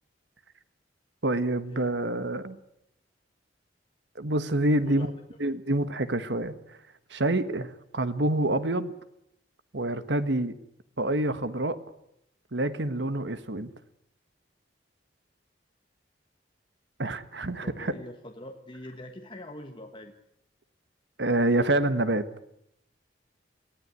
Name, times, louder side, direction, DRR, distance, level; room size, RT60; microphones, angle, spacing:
voice 1, 1.2-2.6 4.1-5.1 5.4-6.6 7.1-8.9 9.7-10.5 11.0-11.8 12.5-13.7 17.0-17.9 21.2-22.3, right 1 dB, 70° right, 12 dB, 1.4 m, -27 dB
voice 2, 17.6-20.1, left 1 dB, 30° left, 4 dB, 1.6 m, -43 dB
24.0 x 16.5 x 9.6 m, 0.78 s
head